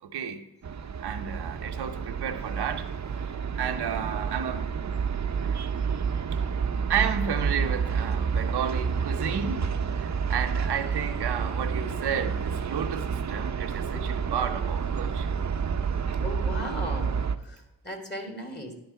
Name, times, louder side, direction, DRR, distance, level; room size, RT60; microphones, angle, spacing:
voice 1, 0.0-0.4 1.0-4.7 5.4-5.6 6.9-15.4, right 7 dB, 80° right, 0.8 m, -32 dB
sound 1, 0.6-17.4, right 6 dB, 45° right, 0.7 m, -29 dB
voice 2, 16.2-18.7, left 1 dB, 25° left, 2.4 m, -37 dB
11.0 x 4.0 x 5.6 m
cardioid pair, 50°, 39 cm